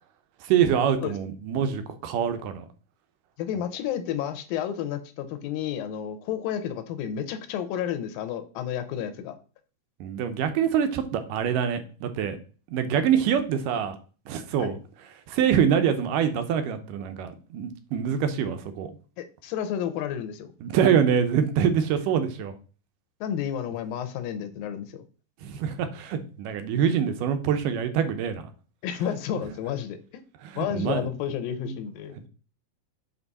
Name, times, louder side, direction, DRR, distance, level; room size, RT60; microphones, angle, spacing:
voice 1, 0.4-2.7 10.0-12.4 12.7-14.0 14.3-14.8 15.3-18.9 20.6-22.5 25.4-28.4 30.4-31.1 31.6-31.8, right 8 dB, 75° right, 9 dB, 2.2 m, -25 dB
voice 2, 3.4-9.4 14.6-14.7 19.2-20.5 23.2-25.0 28.8-30.2 30.6-32.2, left 9 dB, 85° left, 11 dB, 2.5 m, -31 dB
6.0 x 5.8 x 4.0 m, 0.38 s
omnidirectional pair, 4.2 m